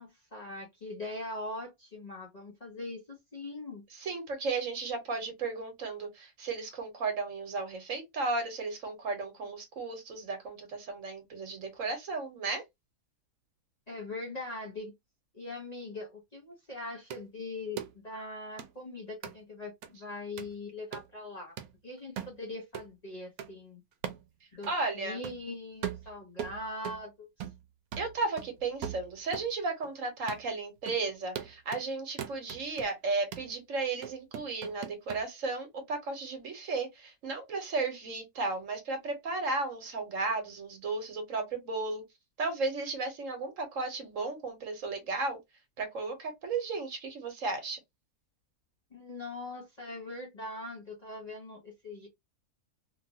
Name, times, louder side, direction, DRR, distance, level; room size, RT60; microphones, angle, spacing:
voice 1, 0.0-3.8 13.9-14.9 15.3-21.5 21.8-23.8 24.5-27.5 48.9-52.1, left 2 dB, 35° left, 0.8 m, -41 dB
voice 2, 3.9-12.6 24.7-25.2 28.0-42.0 42.4-45.4 45.8-47.8, right 3 dB, 65° right, 1.3 m, -34 dB
sound 1, 17.1-17.2 17.8-17.9 18.6-18.7 19.2-19.4 19.8-19.9 20.4-20.6 20.9-21.1 21.6-21.7 22.2-22.4 22.7-22.9 23.4-23.5 24.0-24.3 24.6-24.7 25.2-25.4 25.8-27.0 27.4-27.7 27.9-29.5 29.8-29.9 30.3-30.5 30.9-31.0 31.4-31.9 32.2-32.9 33.3-33.5 34.0-35.2, right 9 dB, 85° right, 1.1 m, -40 dB
3.0 x 2.4 x 2.7 m
omnidirectional pair, 1.5 m